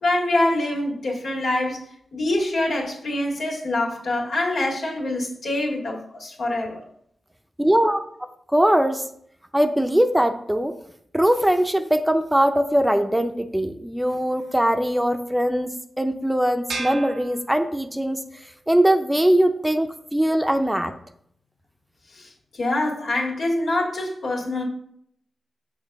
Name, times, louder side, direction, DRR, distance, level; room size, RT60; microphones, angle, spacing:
voice 1, 0.0-1.8 2.1-6.8 22.1-24.6, left 2 dB, 75° left, 2.0 m, -25 dB
voice 2, 7.6-9.1 9.5-10.8 11.1-18.2 18.7-20.9, right 1 dB, 10° right, 0.7 m, -21 dB
sound 1, 16.7-18.2, right 3 dB, 90° right, 1.0 m, -34 dB
6.6 x 3.2 x 5.9 m
cardioid pair, 55°, 0 cm